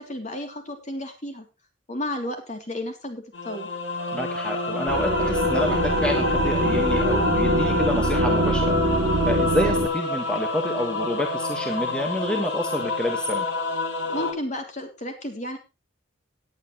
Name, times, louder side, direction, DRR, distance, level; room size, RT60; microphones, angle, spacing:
voice 1, 0.0-1.5 1.9-3.7 14.1-15.6, left 1 dB, 35° left, 5 dB, 3.1 m, -32 dB
sound 1, 3.3-14.3, left 2 dB, 65° left, 3.2 m, -28 dB
voice 2, 4.1-9.0 9.2-13.4, left 1 dB, 5° left, 3 dB, 1.7 m, -28 dB
sound 2, 4.9-9.9, equal, 80° right, 3.3 m, -23 dB
18.0 x 9.7 x 3.1 m, 0.28 s
head